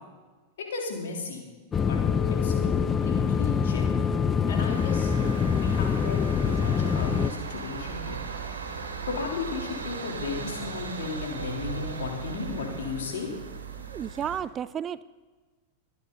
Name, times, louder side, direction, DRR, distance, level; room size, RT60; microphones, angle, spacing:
voice 1, 0.7-1.5 1.9-2.0 2.4-4.1 4.5-5.1 5.6-8.2 9.1-13.3, left 4 dB, 60° left, 0 dB, 3.5 m, -35 dB
sound 1, 1.7-7.3, left 6 dB, 20° left, 0.6 m, -25 dB
sound 2, 4.7-14.4, right 5 dB, 70° right, 2.5 m, -37 dB
voice 2, 13.9-15.0, right 9 dB, 25° right, 17 dB, 0.4 m, -32 dB
24.0 x 10.0 x 4.0 m, 1.3 s
figure-of-eight pair, 90°, 0 cm